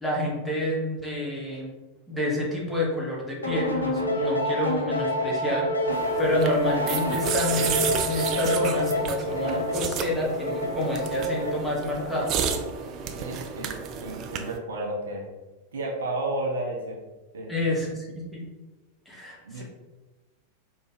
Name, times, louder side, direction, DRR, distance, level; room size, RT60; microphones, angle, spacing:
voice 1, 0.0-1.7 2.1-5.7 6.2-12.3 17.5-18.4 19.1-19.6, left 1 dB, 5° left, -4 dB, 1.0 m, -28 dB
sound 1, 3.4-12.8, left 1 dB, 80° left, 0.5 m, -28 dB
sound 2, 5.9-14.6, right 7 dB, 35° right, 0.3 m, -32 dB
voice 2, 13.2-15.3 15.7-17.0 17.3-17.5 19.4-19.6, right 2 dB, 65° right, -1 dB, 0.7 m, -32 dB
4.7 x 2.3 x 3.1 m, 1.1 s
figure-of-eight pair, 90°, 0 cm